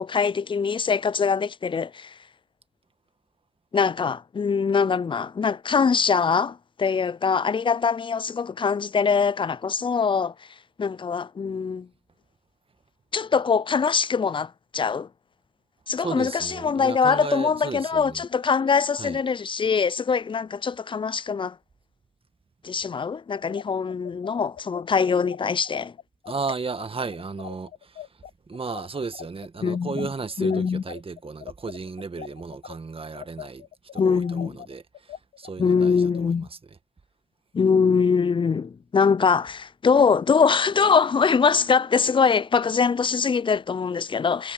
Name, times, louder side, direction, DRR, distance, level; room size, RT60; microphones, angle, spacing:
voice 1, 0.0-2.1 3.7-10.3 10.8-11.9 13.1-15.1 15.9-21.6 22.6-25.9 29.6-30.1 30.4-30.8 34.0-34.6 35.6-36.5 37.5-44.5, left 5 dB, 35° left, 0.5 m, -23 dB
voice 2, 16.0-18.2 19.0-19.2 26.3-28.1 28.5-33.7 33.9-36.6, right 4 dB, 40° right, 1.8 m, -34 dB
sound 1, 23.4-32.8 33.1-36.2, left 9 dB, 75° left, 3.8 m, -42 dB
supercardioid pair, 45°, 15 cm